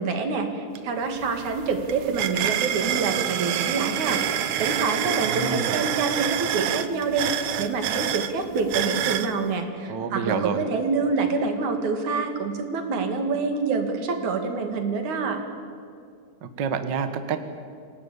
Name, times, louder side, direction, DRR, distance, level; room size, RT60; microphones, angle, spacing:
voice 1, 0.0-4.2 4.5-15.4, right 4 dB, 70° right, 5 dB, 3.5 m, -26 dB
sound 1, 0.8-0.9 1.2-9.3, right 11 dB, 85° right, 2.5 m, -27 dB
voice 2, 5.2-5.8 9.9-10.6 16.4-17.4, right 6 dB, 50° right, 9 dB, 1.3 m, -28 dB
26.5 x 17.5 x 8.6 m, 2.3 s
omnidirectional pair, 3.6 m